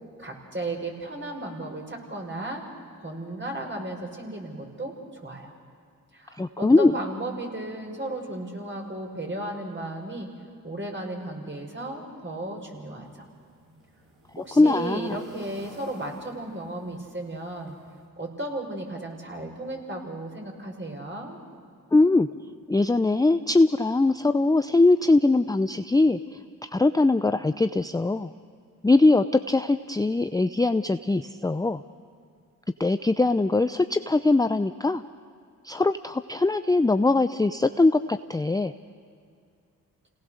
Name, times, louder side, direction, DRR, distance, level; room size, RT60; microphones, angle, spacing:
voice 1, 0.2-2.6 3.0-5.5 6.1-10.3 10.6-13.3 14.4-17.7 18.2-21.4, right 1 dB, 30° right, 1 dB, 5.8 m, -35 dB
voice 2, 6.4-6.9 14.6-15.2 21.9-22.3 22.7-26.2 26.6-28.3 28.8-31.8 32.8-35.0 35.6-38.7, left 2 dB, 10° left, 10 dB, 0.6 m, -21 dB
sound 1, 13.0-18.1, right 2 dB, 65° right, 7.4 m, -54 dB
28.5 x 18.5 x 6.6 m, 2.3 s
supercardioid pair, 45°, 37 cm